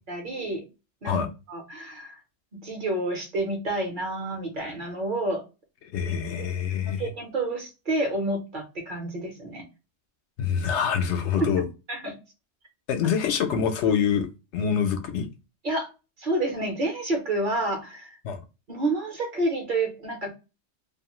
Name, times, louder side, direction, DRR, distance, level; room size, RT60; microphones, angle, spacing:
voice 1, 0.1-0.6 1.0-2.2 2.5-5.4 6.1-6.2 6.8-9.6 11.4-11.5 11.9-12.2 15.6-15.9 16.2-18.2 18.7-20.3, right 2 dB, 50° right, 0.9 m, -29 dB
voice 2, 5.9-7.1 10.4-11.6 12.9-14.3 14.5-15.3 18.2-18.4, left 7 dB, 75° left, 0.9 m, -25 dB
2.7 x 2.4 x 2.9 m
omnidirectional pair, 1.2 m